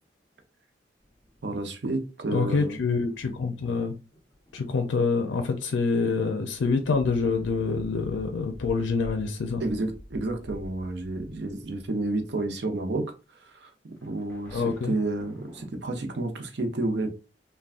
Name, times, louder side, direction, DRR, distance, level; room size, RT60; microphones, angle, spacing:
sound 1, 1.0-1.7 2.4-3.7 4.1-4.7 5.3-5.5 5.9-6.1 6.5-12.5 12.8-12.9 14.0-15.7, equal, 10° left, 0.6 m, -47 dB
voice 1, 1.4-2.8 9.6-13.0 13.4-13.7 14.0-17.1, right 2 dB, 65° right, 0.6 m, -30 dB
voice 2, 2.3-4.0 4.5-9.6 14.5-15.0, left 4 dB, 80° left, 0.4 m, -26 dB
3.5 x 2.2 x 2.4 m
head